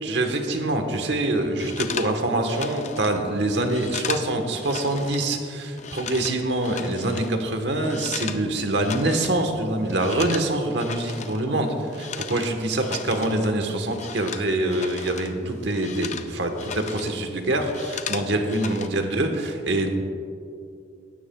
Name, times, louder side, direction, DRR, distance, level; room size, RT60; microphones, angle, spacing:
voice 1, 0.0-19.9, right 1 dB, 70° right, 5 dB, 1.2 m, -25 dB
sound 1, 1.6-5.3 5.6-8.5 8.7-9.5 9.7-15.4 15.6-17.2 17.5-18.9, left 7 dB, 40° left, 0.4 m, -36 dB
18.0 x 12.5 x 2.3 m, 2.4 s
head